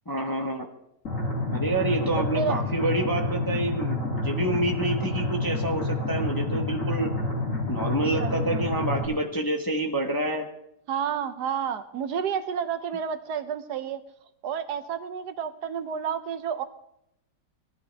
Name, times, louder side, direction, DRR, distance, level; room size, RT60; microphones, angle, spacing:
voice 1, 0.1-0.7 1.5-7.1 7.7-10.5, right 1 dB, 15° left, 2 dB, 0.7 m, -28 dB
sound 1, 1.0-9.0, left 2 dB, 45° left, 2.7 m, -28 dB
voice 2, 2.2-2.6 8.2-8.7 10.9-14.0 14.4-16.6, right 7 dB, 70° right, 11 dB, 1.2 m, -30 dB
18.0 x 12.0 x 3.4 m, 0.78 s
omnidirectional pair, 1.9 m